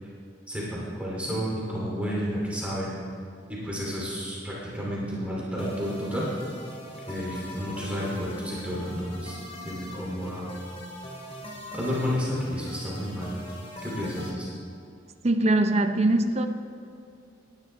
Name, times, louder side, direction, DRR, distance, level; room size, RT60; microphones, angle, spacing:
voice 1, 0.5-2.9 3.5-6.3 7.1-9.4 9.6-10.5 11.7-13.3 13.8-14.5, equal, 5° right, -6 dB, 2.7 m, -31 dB
sound 1, 5.6-14.3, left 1 dB, 35° left, 2.1 m, -41 dB
voice 2, 15.2-16.5, right 2 dB, 35° right, 6 dB, 0.5 m, -22 dB
18.0 x 10.5 x 3.4 m, 2.5 s
head